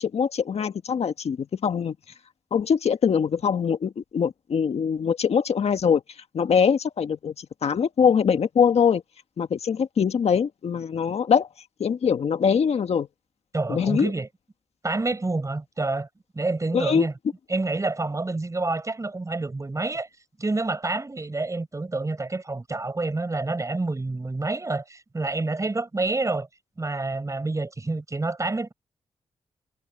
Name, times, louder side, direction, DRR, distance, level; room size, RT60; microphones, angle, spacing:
voice 1, 0.0-1.9 2.5-6.0 6.3-9.0 9.4-11.5 11.8-13.1 13.7-14.1 16.7-17.1, left 7 dB, 65° left, 1.6 m, -23 dB
voice 2, 13.5-14.3 14.8-16.1 16.3-17.1 17.5-20.1 20.4-26.5 26.8-28.7, right 3 dB, 30° right, 5.1 m, -28 dB
cardioid pair, 65°, 11 cm